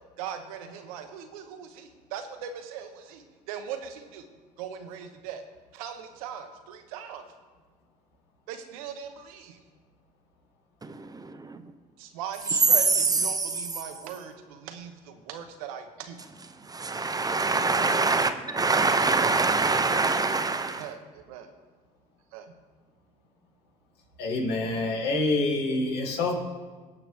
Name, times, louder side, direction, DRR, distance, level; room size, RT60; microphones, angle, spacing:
voice 1, 0.2-3.2 3.5-4.2 4.6-5.4 5.7-7.2 8.5-9.5 12.0-16.2 20.8-21.5 22.3-22.5, right 8 dB, 90° right, 0.9 m, -39 dB
voice 2, 10.8-11.7 12.5-13.9 16.2-20.9, right 3 dB, 20° right, 0.8 m, -25 dB
voice 3, 24.2-26.3, left 2 dB, 70° left, 2.4 m, -26 dB
17.5 x 5.9 x 3.5 m
supercardioid pair, 75°, 18 cm